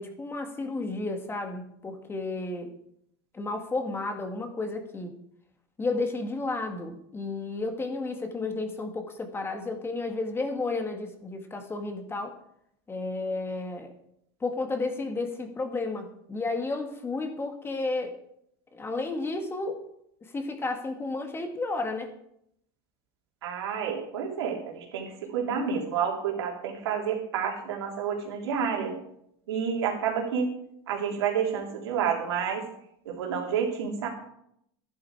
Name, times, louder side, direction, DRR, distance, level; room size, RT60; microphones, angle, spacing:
voice 1, 0.0-2.7 3.3-5.1 5.8-12.4 12.9-13.9 14.4-18.2 18.7-19.8 20.3-22.1, left 3 dB, 20° left, 5 dB, 1.8 m, -32 dB
voice 2, 23.4-28.9 29.5-30.5 30.9-32.6 33.0-34.1, right 7 dB, 90° right, 0 dB, 3.4 m, -29 dB
12.5 x 11.0 x 4.8 m, 0.74 s
supercardioid pair, 120°, 13 cm